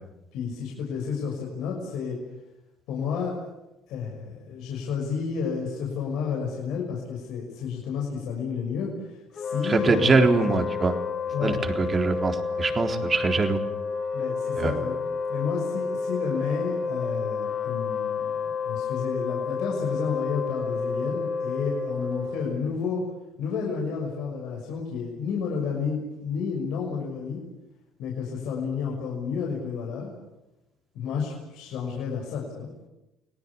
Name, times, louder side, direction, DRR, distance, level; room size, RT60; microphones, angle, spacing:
voice 1, 0.3-2.2 2.9-3.3 3.9-10.2 11.3-11.6 14.1-14.9 15.3-23.0 23.4-27.4 28.0-30.1 30.9-32.7, left 6 dB, 75° left, -1 dB, 6.1 m, -31 dB
Wind instrument woodwind instrument, 9.3-22.7, left 5 dB, 45° left, 4.4 m, -30 dB
voice 2, 9.6-11.0 11.4-13.6 14.6-14.7, right 4 dB, 35° right, 5 dB, 3.9 m, -23 dB
29.5 x 18.5 x 8.6 m, 0.95 s
supercardioid pair, 70°, 0 cm